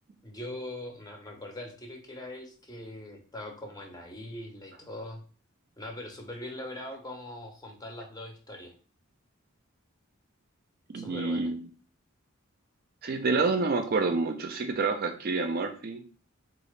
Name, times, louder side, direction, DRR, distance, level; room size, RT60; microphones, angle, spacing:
voice 1, 0.2-5.2 5.8-8.7 10.9-11.5, left 1 dB, 20° left, 2 dB, 0.7 m, -41 dB
voice 2, 10.9-11.7 13.0-16.0, right 3 dB, 45° right, 5 dB, 0.4 m, -28 dB
3.8 x 2.4 x 3.1 m, 0.39 s
head